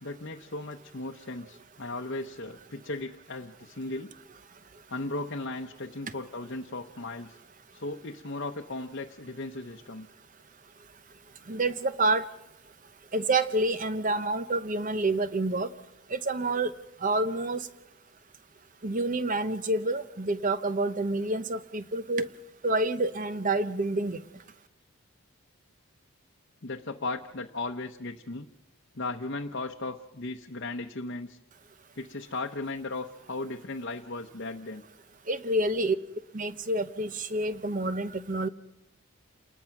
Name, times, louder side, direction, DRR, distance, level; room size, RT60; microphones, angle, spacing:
voice 1, 0.0-4.1 4.9-7.4 7.7-10.1 26.6-28.5 28.9-31.4 32.0-34.8, left 2 dB, 50° left, 2 dB, 0.9 m, -36 dB
voice 2, 11.5-12.3 13.1-15.7 16.1-16.7 17.0-17.6 18.8-22.3 22.6-24.2 35.3-35.9 36.3-38.5, right 2 dB, 35° right, 13 dB, 0.8 m, -28 dB
28.5 x 20.0 x 5.9 m, 0.93 s
head